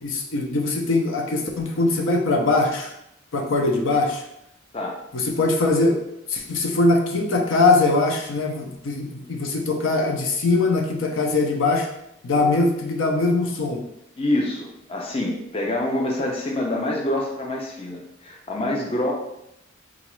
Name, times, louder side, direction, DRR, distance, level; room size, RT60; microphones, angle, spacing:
voice 1, 0.0-2.9 3.3-4.2 5.1-6.0 6.3-11.9 12.2-13.8, left 3 dB, 75° left, 2 dB, 0.6 m, -21 dB
voice 2, 14.2-19.1, left 1 dB, 30° left, -1 dB, 0.4 m, -26 dB
3.9 x 2.4 x 3.0 m, 0.80 s
head